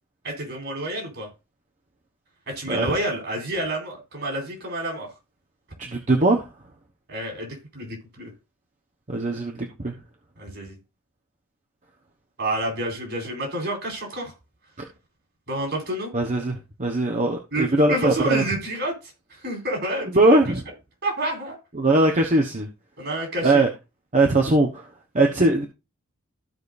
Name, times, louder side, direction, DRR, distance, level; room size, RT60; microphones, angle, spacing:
voice 1, 0.2-1.3 2.5-5.1 7.1-8.3 10.4-10.7 12.4-14.3 15.5-16.1 17.5-18.9 19.4-20.4 21.0-21.6 23.0-23.6, right 1 dB, 60° right, 1 dB, 4.1 m, -29 dB
voice 2, 5.8-6.5 9.1-9.9 16.1-18.4 20.1-20.6 21.7-22.7 23.4-23.7 24.1-24.9 25.1-25.7, right 2 dB, 35° right, 2 dB, 1.2 m, -20 dB
15.0 x 5.1 x 2.6 m, 0.27 s
head